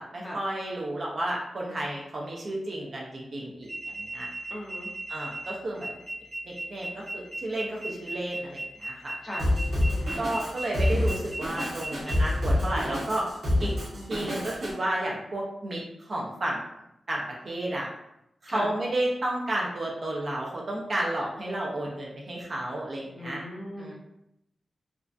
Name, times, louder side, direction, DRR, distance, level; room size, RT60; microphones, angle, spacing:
voice 1, 0.0-3.7 4.0-4.3 5.1-5.9 6.4-9.2 10.2-13.3 13.6-13.7 14.1-16.6 17.1-17.9 18.4-23.4 23.8-23.9, right 1 dB, 45° right, -4 dB, 0.4 m, -32 dB
sound 1, 3.6-12.1, right 1 dB, 15° right, 1.3 m, -38 dB
voice 2, 4.5-4.9 9.2-9.5 9.9-10.2 13.9-14.3 18.5-18.7 23.1-23.9, equal, 20° left, -4 dB, 0.6 m, -38 dB
Drum kit, 9.4-14.7, left 1 dB, 70° right, 1.0 m, -27 dB
2.4 x 2.1 x 2.4 m, 0.82 s
wide cardioid pair, 155°, 0 cm